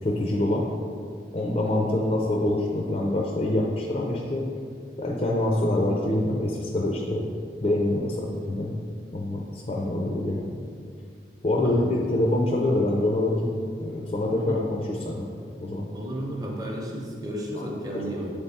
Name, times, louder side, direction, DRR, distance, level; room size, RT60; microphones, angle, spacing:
voice 1, 0.0-0.7 1.3-4.4 5.0-7.2 7.6-8.8 9.1-10.5 11.4-13.5 13.8-15.3 15.6-15.8, left 1 dB, 35° left, -2 dB, 0.5 m, -25 dB
voice 2, 11.6-12.1 14.4-14.6 15.9-18.3, equal, 20° right, -1 dB, 0.8 m, -33 dB
7.7 x 3.5 x 4.2 m, 2.2 s
head